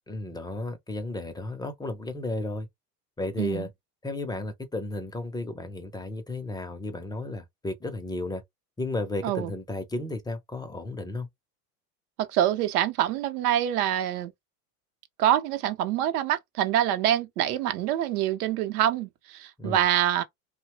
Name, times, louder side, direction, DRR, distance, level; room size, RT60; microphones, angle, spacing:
voice 1, 0.1-2.7 3.2-3.7 4.0-8.4 8.8-11.3 19.6-19.8, left 2 dB, 10° left, 0.5 m, -33 dB
voice 2, 3.4-3.7 9.2-9.5 12.2-14.3 15.2-20.2, right 11 dB, 70° right, 0.8 m, -25 dB
2.7 x 2.2 x 3.0 m
hypercardioid pair, 95°, 47 cm